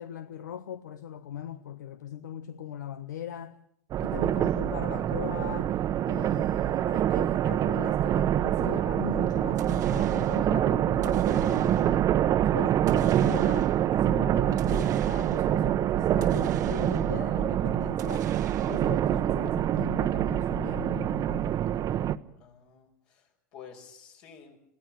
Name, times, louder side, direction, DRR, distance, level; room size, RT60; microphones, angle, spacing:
voice 1, 0.0-3.6 4.0-5.8 6.0-12.0 12.5-18.3 18.7-21.6, left 9 dB, 85° left, 0.8 m, -39 dB
sound 1, 3.9-22.2, right 11 dB, 40° right, 0.9 m, -26 dB
sound 2, 9.6-10.5 11.0-12.1 12.9-13.9 14.6-15.6 16.2-17.3 18.0-19.1, right 11 dB, 85° right, 1.0 m, -46 dB
voice 2, 22.4-24.6, left 7 dB, 60° left, 5.6 m, -51 dB
21.5 x 16.5 x 8.8 m
hypercardioid pair, 100°, 9 cm